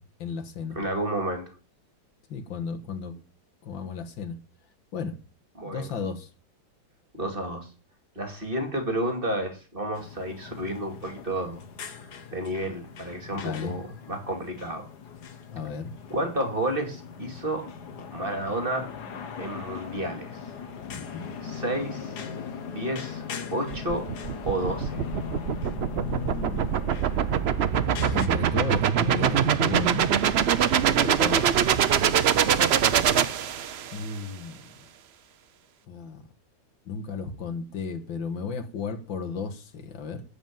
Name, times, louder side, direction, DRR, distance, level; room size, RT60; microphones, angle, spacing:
voice 1, 0.0-0.8 2.3-3.2 3.6-4.4 4.9-5.2 5.6-6.3 13.3-13.7 15.5-15.9 20.8-21.3 26.0-26.9 28.1-30.1 33.9-34.9 35.9-36.2 36.9-40.2, left 5 dB, 80° left, 7 dB, 2.1 m, -34 dB
voice 2, 0.7-1.4 5.6-5.9 7.1-7.7 8.2-11.6 12.0-14.9 16.1-17.7 18.1-18.9 19.4-20.4 21.4-22.1 22.6-23.2 23.5-24.1 24.4-25.0 30.9-31.6, right 1 dB, 30° right, 4 dB, 2.5 m, -31 dB
sound 1, 9.9-28.3, left 6 dB, 60° left, 1.8 m, -39 dB
sound 2, 23.7-34.0, right 8 dB, 90° right, 0.5 m, -23 dB
13.0 x 5.2 x 9.0 m, 0.35 s
omnidirectional pair, 2.1 m